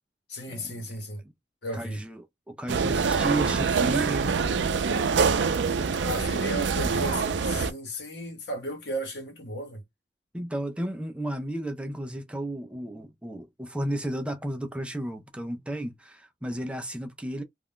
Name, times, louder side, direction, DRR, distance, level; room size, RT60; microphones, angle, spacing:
voice 1, 0.3-1.2 1.6-2.0 6.0-9.8, equal, 70° left, 1.0 m, -35 dB
voice 2, 1.7-2.2 2.5-4.3 10.3-17.4, right 1 dB, 5° right, 0.4 m, -33 dB
sound 1, 2.7-7.7, right 5 dB, 80° right, 0.4 m, -25 dB
2.3 x 2.1 x 3.6 m
head